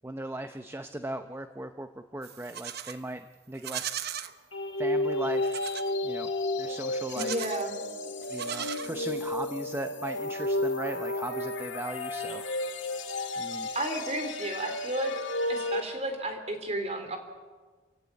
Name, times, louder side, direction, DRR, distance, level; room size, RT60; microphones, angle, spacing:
voice 1, 0.0-4.0 4.8-5.7 6.0-6.3 6.6-7.3 8.3-12.4 13.4-13.7, right 1 dB, 15° right, 8 dB, 0.7 m, -38 dB
Livestock farm animals working animals, 2.2-3.0 3.5-4.3 5.4-5.9 7.0-7.7 8.2-9.3, right 10 dB, 55° right, 1.0 m, -38 dB
sound 1, 4.5-15.8, left 1 dB, 70° left, 2.0 m, -32 dB
voice 2, 7.1-7.8 13.7-15.1 15.5-17.2, right 1 dB, 35° right, 6 dB, 3.5 m, -32 dB
28.0 x 16.5 x 8.4 m, 1.4 s
head